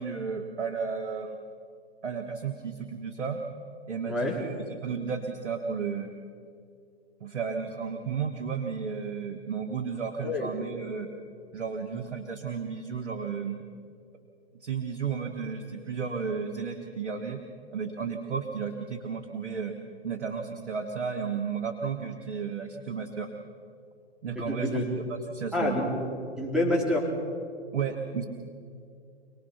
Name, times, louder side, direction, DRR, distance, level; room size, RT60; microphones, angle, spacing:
voice 1, 0.0-1.4 2.0-3.4 3.9-6.1 7.2-11.1 11.5-13.6 14.6-17.4 17.7-19.7 20.0-23.3 24.2-24.7 25.0-25.9 27.7-28.2, right 6 dB, 85° right, 4 dB, 1.6 m, -33 dB
voice 2, 4.1-4.4 10.2-10.5 24.4-24.8 25.5-26.1 26.4-27.1, left 1 dB, ahead, -2 dB, 4.3 m, -27 dB
26.5 x 19.0 x 5.8 m, 2.4 s
hypercardioid pair, 125°, 33 cm